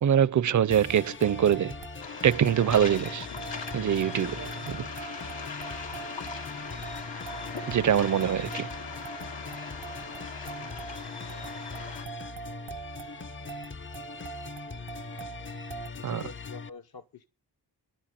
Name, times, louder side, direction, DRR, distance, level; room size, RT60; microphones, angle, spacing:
voice 1, 0.0-1.7 2.2-3.3 3.7-5.1 7.6-8.7 16.0-16.3, right 9 dB, 45° right, 0.5 m, -24 dB
sound 1, 0.7-16.7, left 4 dB, 30° left, 0.6 m, -41 dB
sound 2, 0.9-15.9, right 8 dB, 90° right, 1.1 m, -45 dB
Waves surf, 2.0-12.0, left 5 dB, 80° left, 2.1 m, -40 dB
voice 2, 15.9-17.2, left 6 dB, 60° left, 1.0 m, -46 dB
10.5 x 8.8 x 7.5 m
wide cardioid pair, 90°, 42 cm